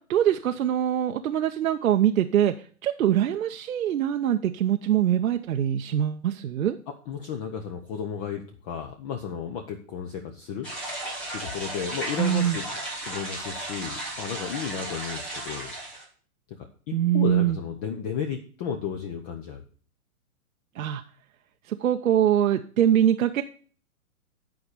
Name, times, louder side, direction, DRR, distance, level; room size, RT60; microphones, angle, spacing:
voice 1, 0.1-2.5 2.8-6.8 12.2-12.6 16.9-17.6 20.8-21.0 21.7-23.4, right 10 dB, 70° right, 6 dB, 0.8 m, -23 dB
voice 2, 7.1-10.7 11.3-12.7 13.0-15.7 16.6-19.6, left 7 dB, 30° left, 5 dB, 0.8 m, -33 dB
sound 1, 10.6-16.0, right 1 dB, 5° left, 0.4 m, -35 dB
9.5 x 4.9 x 6.6 m, 0.43 s
hypercardioid pair, 135°, 44 cm